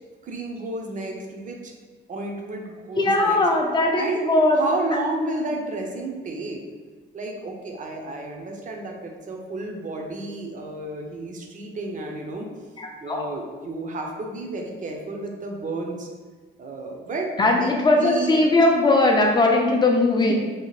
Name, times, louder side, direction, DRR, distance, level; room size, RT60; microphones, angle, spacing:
voice 1, 0.2-1.7 2.1-3.4 3.9-4.2 4.5-6.6 7.1-12.5 13.0-16.1 16.6-18.5 20.2-20.3, right 2 dB, 40° right, 1 dB, 0.5 m, -31 dB
voice 2, 3.0-4.6 12.8-13.3 17.4-20.3, left 2 dB, 20° left, 1 dB, 0.5 m, -19 dB
2.8 x 2.0 x 3.0 m, 1.4 s
cardioid pair, 90°, 20 cm